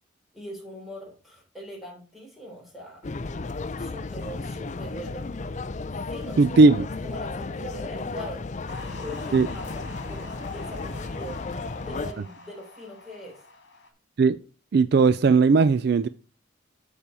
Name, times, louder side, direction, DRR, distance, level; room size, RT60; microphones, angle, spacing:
voice 1, 0.3-3.0 3.8-5.3 6.1-6.4 7.0-13.4, equal, ahead, 3.5 m, -42 dB
sound 1, 3.0-12.1, left 3 dB, 35° left, 0.4 m, -34 dB
voice 2, 6.4-6.9 9.3-9.5 14.2-14.4 14.7-16.1, right 4 dB, 50° right, 0.3 m, -17 dB
sound 2, 8.7-13.9, left 3 dB, 55° left, 2.5 m, -44 dB
7.4 x 6.7 x 4.8 m
head